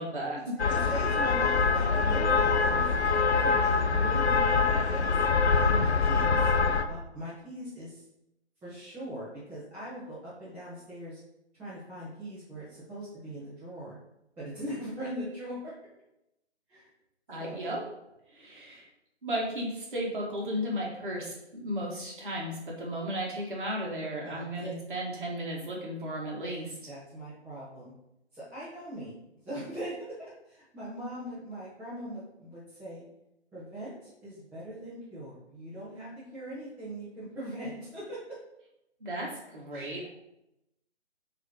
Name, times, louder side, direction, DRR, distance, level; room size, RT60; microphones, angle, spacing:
voice 1, 0.0-0.5 17.3-17.8 18.3-18.8 19.2-26.8 39.0-40.1, equal, 45° right, -3 dB, 2.1 m, -34 dB
sound 1, 0.6-6.8, left 4 dB, 70° left, 0.7 m, -24 dB
voice 2, 0.7-2.9 3.4-5.2 5.5-6.5 6.9-8.0 8.6-11.2 11.6-14.0 14.4-15.7 16.7-16.9 17.4-17.6 24.2-24.7 26.9-27.9 28.3-29.1 29.4-30.2 30.5-33.0 33.5-38.2 39.7-39.9, right 1 dB, 5° right, -11 dB, 1.0 m, -40 dB
8.0 x 3.2 x 3.8 m, 0.86 s
figure-of-eight pair, 140°, 35 cm